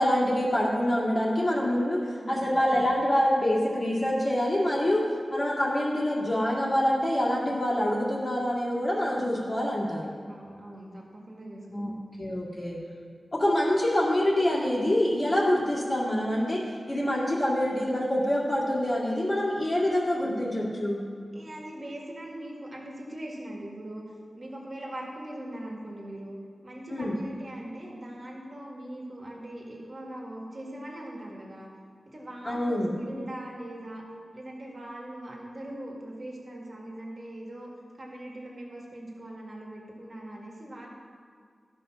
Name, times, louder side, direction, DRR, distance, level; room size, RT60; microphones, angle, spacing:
voice 1, 0.0-10.1 11.7-11.9 12.2-12.8 13.3-21.0 26.9-27.1 32.5-32.9, left 1 dB, 35° left, -5 dB, 1.9 m, -26 dB
voice 2, 2.2-2.5 10.3-12.0 21.3-26.4 26.6-31.7 32.1-34.0 34.3-37.7 38.0-40.9, right 1 dB, 40° right, -2 dB, 2.0 m, -41 dB
12.5 x 5.6 x 6.1 m, 2.1 s
wide cardioid pair, 120°, 0 cm